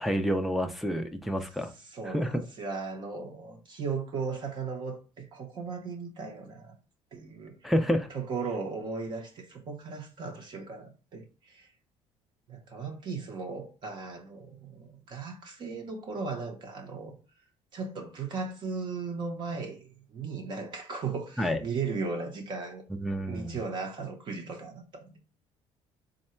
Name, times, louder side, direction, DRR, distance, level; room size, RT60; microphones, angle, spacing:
voice 1, 0.0-1.7 2.1-2.4 7.6-8.1 21.4-21.6 23.0-23.6, equal, ahead, 0.3 m, -28 dB
voice 2, 1.8-6.7 7.1-7.7 8.1-11.7 12.5-17.2 17.7-22.8 23.3-25.2, right 4 dB, 40° right, 0.6 m, -37 dB
3.7 x 2.1 x 4.2 m
cardioid pair, 155°, 12 cm